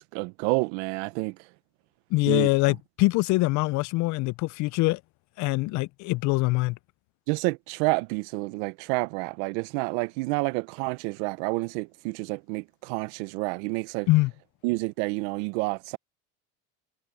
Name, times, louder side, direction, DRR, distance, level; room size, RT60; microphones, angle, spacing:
voice 1, 0.0-1.4 2.3-2.5 7.3-14.1 14.6-16.0, right 26 dB, 80° right, 0.7 m, -29 dB
voice 2, 2.1-5.0 5.4-6.8 14.1-14.3, left 22 dB, 55° left, 0.5 m, -24 dB
supercardioid pair, 115°, 34 cm